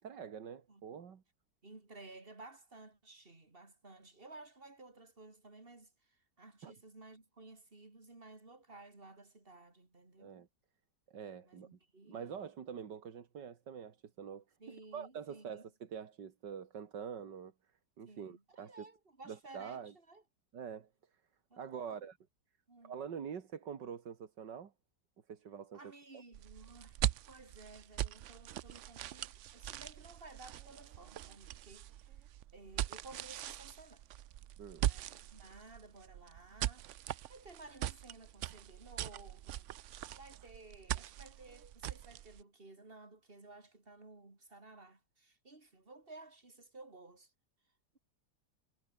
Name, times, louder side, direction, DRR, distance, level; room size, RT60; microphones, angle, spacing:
voice 1, 0.0-1.2 6.6-6.7 10.2-10.5 11.1-11.8 12.1-17.5 18.0-18.9 19.3-19.9 20.5-20.9 21.6-22.2 22.8-24.7 25.3-25.8 34.6-34.9, right 7 dB, 85° right, 2.4 m, -45 dB
voice 2, 1.6-5.9 6.4-10.4 11.4-12.4 14.6-15.7 18.0-20.2 21.5-22.0 22.7-23.0 25.7-27.0 27.3-32.2 32.5-34.0 34.8-36.9 37.3-39.6 40.2-47.3, right 2 dB, 30° right, 3.7 m, -55 dB
sound 1, 26.3-42.4, right 12 dB, 70° right, 0.7 m, -41 dB
omnidirectional pair, 1.8 m